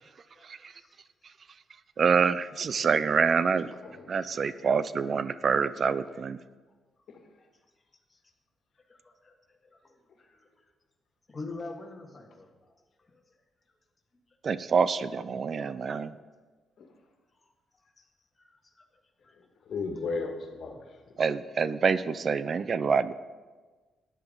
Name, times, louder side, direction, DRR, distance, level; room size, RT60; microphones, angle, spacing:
voice 1, 2.0-3.7 4.1-6.4 14.4-16.2 21.2-23.1, right 5 dB, 45° right, 15 dB, 0.4 m, -26 dB
voice 2, 3.8-4.5 7.1-7.2 16.8-16.9 19.6-20.8 21.1-21.2, left 4 dB, 65° left, 3 dB, 1.8 m, -35 dB
voice 3, 8.9-10.5 11.3-12.5 13.0-13.2 18.0-18.1 18.4-18.8 19.2-19.3, left 3 dB, 25° left, 2 dB, 1.7 m, -45 dB
13.5 x 10.0 x 3.9 m, 1.3 s
cardioid pair, 105°, 0 cm